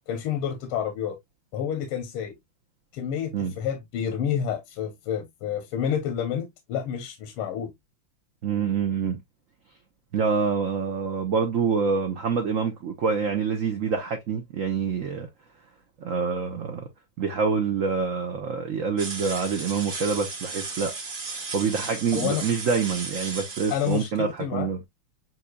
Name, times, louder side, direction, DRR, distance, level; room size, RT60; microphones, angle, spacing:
voice 1, 0.1-1.2 1.5-2.4 2.9-7.7 22.1-22.4 23.7-24.7, left 9 dB, 85° left, 1.7 m, -29 dB
voice 2, 8.4-9.2 10.1-15.3 16.0-16.9 17.2-20.9 21.3-24.8, right 5 dB, 65° right, 0.7 m, -26 dB
sound 1, 19.0-24.1, right 4 dB, 40° right, 2.0 m, -35 dB
7.7 x 2.7 x 2.2 m
omnidirectional pair, 2.4 m